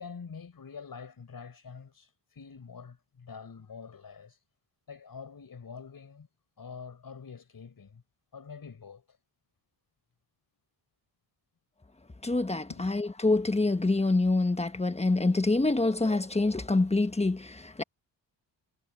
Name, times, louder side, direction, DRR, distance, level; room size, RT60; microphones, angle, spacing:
voice 1, 0.0-4.4 4.9-6.3 6.6-8.0 8.3-9.2 12.7-12.9, left 5 dB, 45° left, 5.0 m, -46 dB
voice 2, 12.2-17.8, left 2 dB, 15° left, 1.3 m, -26 dB
cardioid pair, 105°, 47 cm